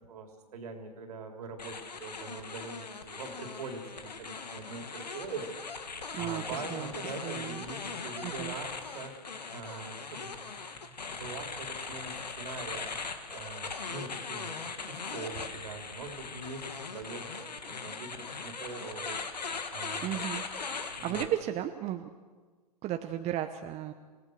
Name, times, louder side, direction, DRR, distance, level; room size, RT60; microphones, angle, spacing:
voice 1, 0.1-5.5 6.2-9.1 9.5-12.9 13.3-14.6 14.9-19.2 19.7-20.2 21.0-21.3, right 4 dB, 65° right, 4 dB, 4.0 m, -43 dB
sound 1, 1.6-21.2, left 4 dB, 85° left, 2.1 m, -40 dB
voice 2, 6.1-6.9 7.2-7.6 8.2-8.5 20.0-20.4 20.9-22.1 22.8-23.9, right 12 dB, 30° right, 7 dB, 1.1 m, -35 dB
27.5 x 17.5 x 6.7 m, 1.4 s
figure-of-eight pair, 105°, 21 cm